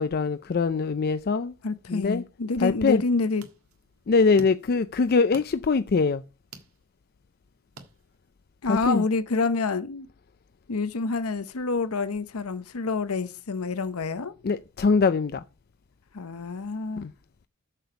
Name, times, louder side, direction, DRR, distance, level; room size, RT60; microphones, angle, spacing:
voice 1, 0.0-1.5 1.9-2.2 2.6-3.0 4.1-6.2 8.7-9.0 14.4-15.4 17.0-17.1, left 4 dB, 45° left, 0.4 m, -23 dB
voice 2, 1.6-3.5 8.6-10.1 10.7-14.3 16.1-17.1, left 3 dB, 85° left, 0.8 m, -28 dB
sound 1, 2.9-8.5, right 3 dB, 80° right, 1.7 m, -50 dB
7.7 x 6.9 x 6.9 m
head